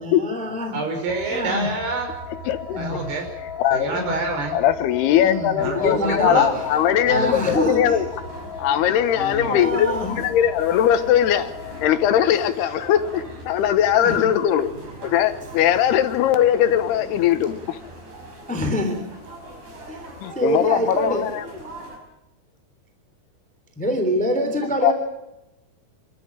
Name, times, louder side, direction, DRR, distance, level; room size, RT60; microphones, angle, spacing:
voice 1, 0.0-0.8 1.3-1.7 2.7-3.1 3.9-4.1 5.2-6.6 7.1-8.0 9.4-10.2 14.0-14.3 18.5-19.0 20.3-21.3 23.8-24.9, equal, ahead, 4 dB, 2.6 m, -25 dB
voice 2, 0.7-2.1 2.8-3.3 3.7-4.6 5.6-6.5 7.1-7.3 9.1-9.5, right 3 dB, 85° right, 1 dB, 7.4 m, -27 dB
sound 1, 1.1-12.1, left 5 dB, 70° left, 4.4 m, -37 dB
voice 3, 2.5-2.8 3.6-4.0 4.5-8.1 8.6-11.5 11.8-14.7 15.0-17.8 20.2-21.4 24.8-24.9, left 10 dB, 90° left, 10 dB, 3.3 m, -20 dB
sound 2, 5.6-22.0, equal, 50° right, 7.2 m, -41 dB
27.5 x 13.0 x 9.0 m, 0.94 s
omnidirectional pair, 4.5 m